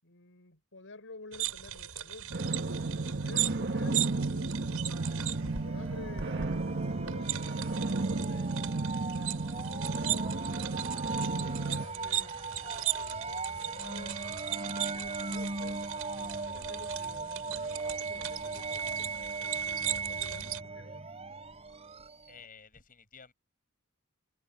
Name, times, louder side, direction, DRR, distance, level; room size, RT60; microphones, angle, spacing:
voice 1, 0.0-2.9 3.2-4.8 5.4-8.6 9.0-10.4 11.0-14.2 14.5-15.9 16.1-19.1 20.1-21.1, left 3 dB, 65° left, 5.9 m, -51 dB
sound 1, 1.3-20.6, right 12 dB, 75° right, 5.8 m, -38 dB
sound 2, 2.3-11.9, right 3 dB, 50° right, 1.4 m, -33 dB
sound 3, 4.9-22.4, right 3 dB, 30° right, 3.3 m, -38 dB
voice 2, 22.3-23.3, left 6 dB, 40° left, 7.5 m, -53 dB
head